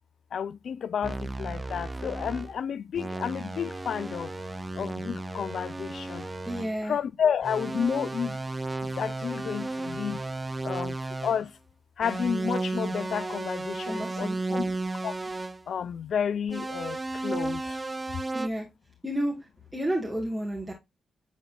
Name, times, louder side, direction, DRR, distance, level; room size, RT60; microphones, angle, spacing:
voice 1, 0.3-4.3 4.7-6.3 6.9-8.4 8.8-10.2 10.6-11.0 11.2-11.5 12.0-14.7 15.0-15.2 15.7-17.8, left 7 dB, 65° left, 0.3 m, -31 dB
sound 1, 1.0-2.6 2.9-6.8 7.4-11.5 12.0-15.6 16.5-18.5, right 2 dB, 25° right, 0.6 m, -34 dB
voice 2, 6.2-7.0 13.9-14.7 18.3-18.7 19.0-20.7, right 1 dB, 5° right, 1.9 m, -32 dB
8.8 x 4.1 x 2.6 m
supercardioid pair, 45°, 0 cm